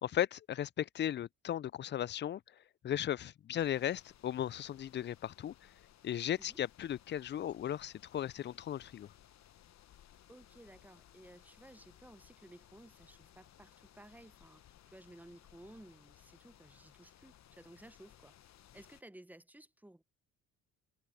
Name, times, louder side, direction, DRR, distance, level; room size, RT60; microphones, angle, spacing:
voice 1, 0.0-2.4 2.8-5.5 6.0-9.1, left 11 dB, 35° left, 0.4 m, -36 dB
sound 1, 3.6-19.0, left 11 dB, 50° left, 1.1 m, -62 dB
voice 2, 10.3-20.0, right 1 dB, 5° right, 0.9 m, -57 dB
supercardioid pair, 65°, 35 cm